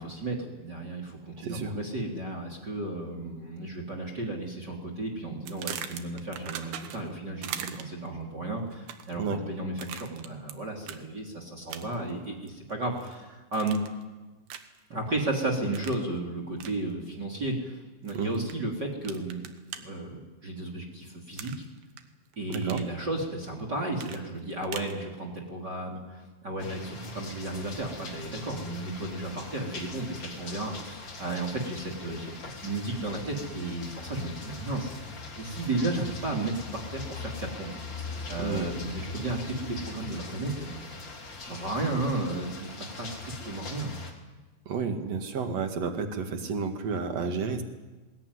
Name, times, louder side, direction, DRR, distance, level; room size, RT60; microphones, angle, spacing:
voice 1, 0.0-13.8 14.9-19.5 19.7-21.5 22.4-34.9 35.3-37.7 38.3-40.9 41.4-43.9, right 2 dB, 25° right, 1 dB, 3.2 m, -34 dB
voice 2, 1.4-1.8 9.2-9.4 18.1-18.4 22.5-22.8 38.4-38.7 44.7-47.6, right 5 dB, 50° right, 5 dB, 2.2 m, -31 dB
sound 1, 5.5-7.1 7.4-8.1 8.7-9.2 9.8-10.5 10.8-11.0 11.7-12.1 12.5-13.1 13.5-14.0 14.5-14.8 15.7-16.0 16.6-16.8 18.1-18.5 19.0-19.8 21.4-22.0 22.3-22.9 24.0-25.0, right 10 dB, 70° right, 2.9 m, -40 dB
sound 2, 26.6-44.1, left 3 dB, 30° left, 2.9 m, -41 dB
20.5 x 20.0 x 9.8 m, 1.2 s
omnidirectional pair, 5.2 m